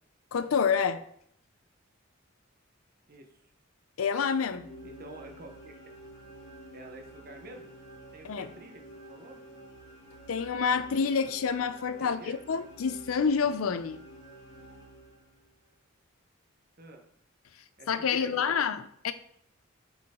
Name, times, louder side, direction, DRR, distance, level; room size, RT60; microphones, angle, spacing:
voice 1, 0.3-1.0 4.0-4.7 8.2-8.5 10.3-14.0 17.9-19.1, left 6 dB, 90° left, 0.5 m, -28 dB
voice 2, 3.1-3.5 4.8-5.7 6.7-7.7 8.1-8.8 9.1-9.4 12.0-12.4 16.8-17.0 17.8-18.6, right 2 dB, 45° right, 1.0 m, -48 dB
sound 1, 4.2-15.6, right 1 dB, 60° left, 2.2 m, -50 dB
7.7 x 4.7 x 3.6 m
head